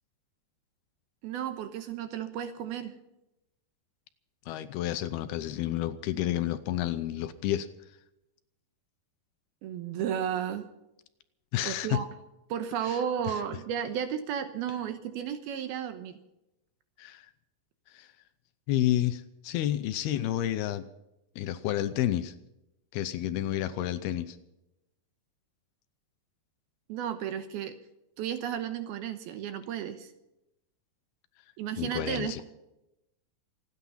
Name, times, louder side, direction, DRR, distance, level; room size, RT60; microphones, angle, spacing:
voice 1, 1.2-2.9 9.6-10.7 11.6-12.1 12.5-16.2 26.9-27.7 28.2-30.1 31.6-32.4, right 9 dB, 70° right, 9 dB, 2.6 m, -33 dB
voice 2, 4.5-7.7 11.5-12.0 12.8-13.0 13.3-13.4 17.0-17.3 17.9-18.1 18.7-20.9 21.4-22.3 22.9-24.4 31.8-32.4, left 13 dB, 80° left, 12 dB, 2.5 m, -30 dB
27.0 x 9.5 x 5.6 m, 0.90 s
omnidirectional pair, 5.0 m